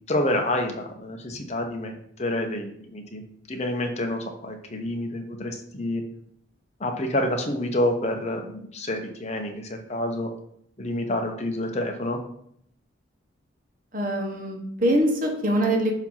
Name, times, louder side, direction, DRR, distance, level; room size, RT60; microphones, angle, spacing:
voice 1, 0.1-1.9 2.2-3.2 3.5-6.0 6.8-10.3 10.8-12.2, left 1 dB, 35° left, 3 dB, 0.8 m, -28 dB
voice 2, 13.9-15.9, right 1 dB, 40° right, 2 dB, 1.1 m, -23 dB
6.9 x 2.9 x 5.6 m, 0.69 s
head